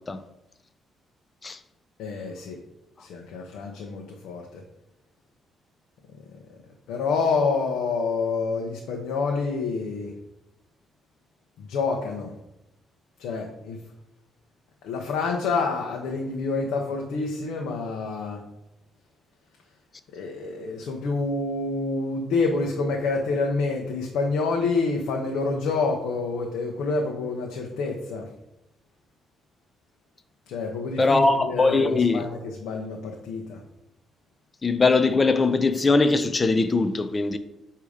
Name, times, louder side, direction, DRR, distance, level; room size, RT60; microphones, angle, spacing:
voice 1, 2.0-2.6 3.0-4.6 6.9-10.1 11.6-12.3 13.2-13.8 14.8-18.4 20.1-28.3 30.5-33.6, left 4 dB, 85° left, 0.8 m, -27 dB
voice 2, 31.0-32.2 34.6-37.4, left 3 dB, 30° left, 0.5 m, -21 dB
8.3 x 2.9 x 4.9 m
cardioid pair, 90°, 0 cm